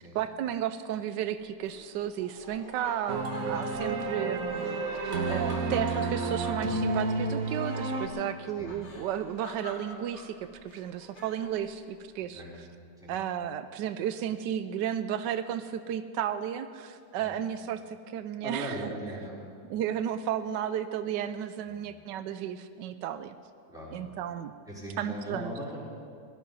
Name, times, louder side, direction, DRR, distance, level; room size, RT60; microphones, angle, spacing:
voice 1, 0.1-12.4 13.1-18.9 19.7-23.3 23.9-24.5 25.0-25.5, right 10 dB, 85° right, 11 dB, 1.2 m, -33 dB
Laughter, 1.6-11.6, left 2 dB, 75° left, 3.3 m, -46 dB
sound 1, 3.1-8.1, right 3 dB, 55° right, 1.4 m, -30 dB
voice 2, 18.4-19.4 21.7-21.9 23.7-24.1 24.7-25.8, equal, ahead, -8 dB, 4.4 m, -39 dB
17.0 x 12.5 x 5.4 m, 2.2 s
omnidirectional pair, 1.8 m